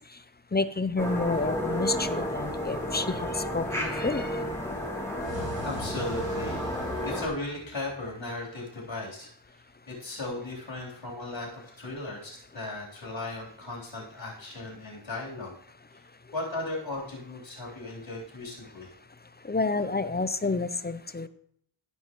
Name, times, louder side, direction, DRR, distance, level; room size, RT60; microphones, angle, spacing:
voice 1, 0.5-4.3 19.5-21.3, left 3 dB, 20° left, 13 dB, 0.5 m, -29 dB
sound 1, 1.0-7.3, equal, 5° left, 2.3 m, -32 dB
sound 2, 5.2-8.3, equal, 60° right, 1.5 m, -41 dB
voice 2, 5.6-6.6 7.0-15.5 15.9-16.0 16.3-18.9, left 2 dB, 65° left, -4 dB, 3.7 m, -37 dB
14.5 x 5.4 x 3.1 m, 0.66 s
cardioid pair, 40°, 50 cm